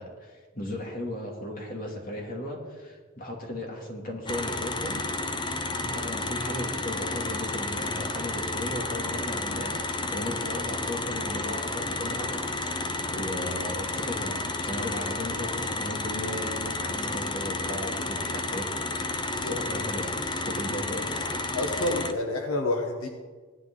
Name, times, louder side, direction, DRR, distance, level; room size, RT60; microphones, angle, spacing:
voice 1, 0.0-5.0 5.8-21.3, left 1 dB, 40° left, -1 dB, 2.8 m, -36 dB
sound 1, 4.3-22.1, left 2 dB, 20° left, 0.7 m, -31 dB
voice 2, 19.2-19.6 21.5-23.1, left 2 dB, 80° left, 2 dB, 1.3 m, -29 dB
17.5 x 11.5 x 4.0 m, 1.4 s
head